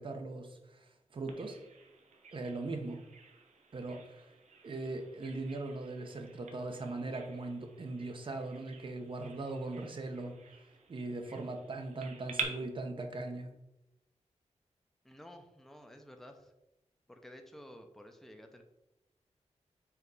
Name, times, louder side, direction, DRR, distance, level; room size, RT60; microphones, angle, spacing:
voice 1, 0.0-1.6 2.3-3.0 3.7-4.3 4.6-10.4 10.9-13.5, right 2 dB, 45° right, 5 dB, 0.8 m, -40 dB
Bird vocalization bird call bird song, 1.3-12.4, right 6 dB, 80° right, 0.9 m, -48 dB
voice 2, 15.0-16.5 17.1-18.6, equal, 5° left, 4 dB, 0.6 m, -52 dB
4.9 x 4.1 x 4.7 m, 0.90 s
wide cardioid pair, 150°, 12 cm